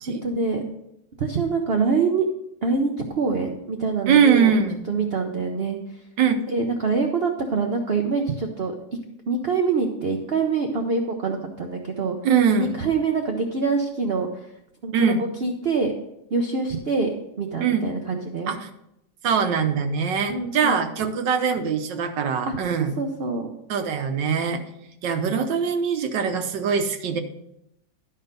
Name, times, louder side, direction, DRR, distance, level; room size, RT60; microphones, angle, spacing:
voice 1, 0.2-0.6 1.2-2.3 2.6-4.5 4.9-5.8 6.5-8.7 9.3-12.2 12.6-14.3 14.8-15.9 16.3-17.1 17.4-18.5 20.3-21.1 22.5-22.6 23.0-23.5, right 4 dB, 50° right, 3 dB, 0.7 m, -25 dB
voice 2, 4.1-4.9 6.2-6.4 12.2-12.7 14.9-15.2 17.6-17.8 18.5-18.7 19.2-23.0 23.7-24.6 25.0-27.2, right 6 dB, 90° right, 8 dB, 1.5 m, -22 dB
12.0 x 4.4 x 5.2 m, 0.82 s
omnidirectional pair, 1.9 m